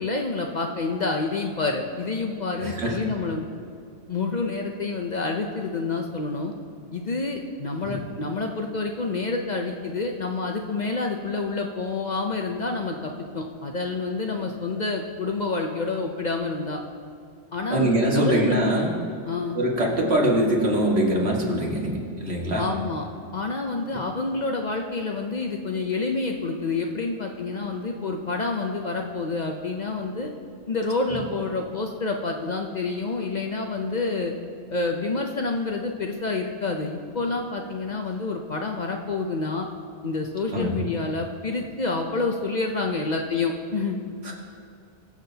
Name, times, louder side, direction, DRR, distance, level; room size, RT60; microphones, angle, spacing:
voice 1, 0.0-3.5 4.1-6.5 6.9-16.8 17.5-18.6 19.3-19.6 22.6-23.1 23.3-30.3 30.7-34.3 34.7-39.7 40.0-44.0, left 3 dB, 45° left, 2 dB, 0.7 m, -28 dB
voice 2, 2.6-3.1 7.8-8.0 17.7-18.9 19.6-22.7 23.9-24.0 31.1-31.2 40.5-40.8 44.2-44.3, right 1 dB, 65° right, -3 dB, 2.1 m, -23 dB
22.0 x 7.3 x 2.8 m, 2.4 s
omnidirectional pair, 1.2 m